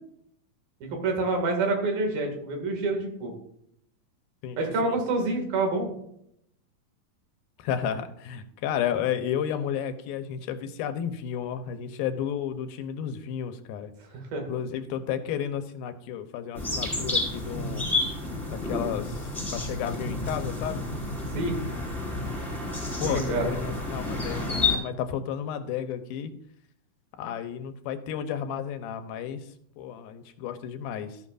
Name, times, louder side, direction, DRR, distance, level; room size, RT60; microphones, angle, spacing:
voice 1, 0.8-3.3 4.6-5.9 14.1-14.4 21.3-21.6 23.0-23.5, right 3 dB, 80° right, 2 dB, 4.0 m, -27 dB
voice 2, 4.4-5.0 7.6-13.9 14.5-17.9 18.5-20.8 23.0-26.3 27.2-29.4 29.8-31.2, left 9 dB, 90° left, 9 dB, 2.7 m, -32 dB
sound 1, 16.5-24.8, left 3 dB, 5° left, 4.6 m, -30 dB
14.0 x 11.0 x 2.5 m, 0.71 s
omnidirectional pair, 4.1 m